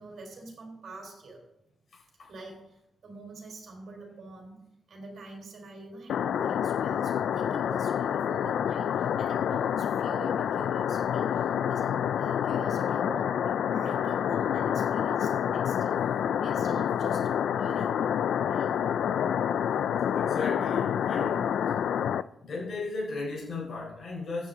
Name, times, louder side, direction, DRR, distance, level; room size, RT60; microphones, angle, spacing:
voice 1, 0.0-1.4 2.3-4.6 4.9-16.0 16.4-18.0 18.4-18.7, right 2 dB, 50° right, 1 dB, 3.8 m, -45 dB
voice 2, 1.9-2.3 20.1-21.6 22.4-24.5, left 3 dB, 45° left, -4 dB, 4.2 m, -36 dB
sound 1, 6.1-22.2, left 9 dB, 70° left, 0.3 m, -28 dB
15.0 x 8.6 x 3.8 m, 0.85 s
wide cardioid pair, 155°, 0 cm